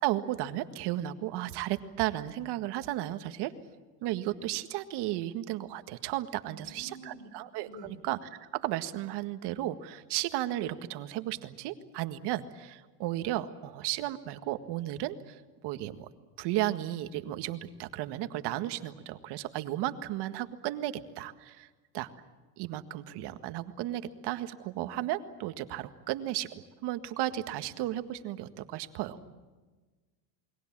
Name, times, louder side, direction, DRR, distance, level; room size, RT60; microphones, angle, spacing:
voice 1, 0.0-3.5 4.0-16.1 16.4-21.7 21.9-22.1 22.6-26.5 26.8-29.2, right 14 dB, 55° right, 9 dB, 1.9 m, -34 dB
voice 2, 6.5-7.3 7.7-8.0 29.1-29.3, equal, 35° left, 13 dB, 3.8 m, -49 dB
28.5 x 22.0 x 7.5 m, 1.3 s
supercardioid pair, 125°, 49 cm